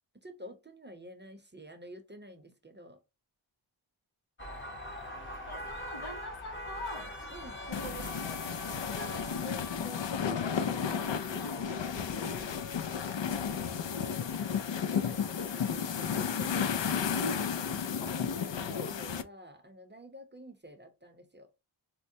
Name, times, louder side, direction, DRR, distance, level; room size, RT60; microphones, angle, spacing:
voice 1, 0.2-3.0 7.3-7.6 8.9-17.2 18.0-21.5, equal, 20° right, 0.7 m, -49 dB
sound 1, 4.4-16.5, left 1 dB, 25° left, 0.8 m, -45 dB
voice 2, 5.5-7.2 7.7-8.8 11.0-11.1 11.4-11.7 16.6-16.8 17.1-17.4, equal, 80° left, 1.0 m, -42 dB
sound 2, 7.7-19.2, left 7 dB, 65° left, 0.5 m, -33 dB
4.4 x 2.1 x 2.6 m
wide cardioid pair, 45°, 48 cm